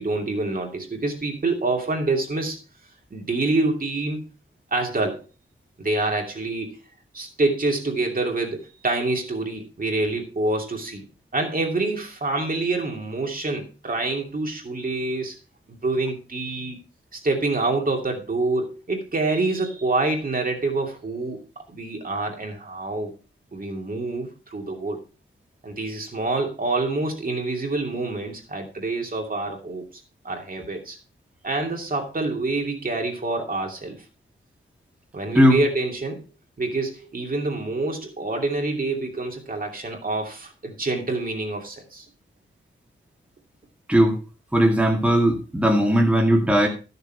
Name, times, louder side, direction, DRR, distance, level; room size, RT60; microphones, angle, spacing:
voice 1, 0.0-2.6 3.1-4.2 4.7-5.2 5.8-6.8 7.1-11.0 11.3-15.4 15.7-16.8 17.1-21.4 21.7-23.1 23.5-25.0 25.6-29.9 30.2-31.0 31.4-34.0 35.1-36.2 36.6-42.1, right 2 dB, 45° right, 1 dB, 2.7 m, -26 dB
voice 2, 44.5-46.7, equal, 5° right, 0 dB, 2.1 m, -18 dB
13.5 x 6.8 x 4.6 m, 0.32 s
wide cardioid pair, 140°, 21 cm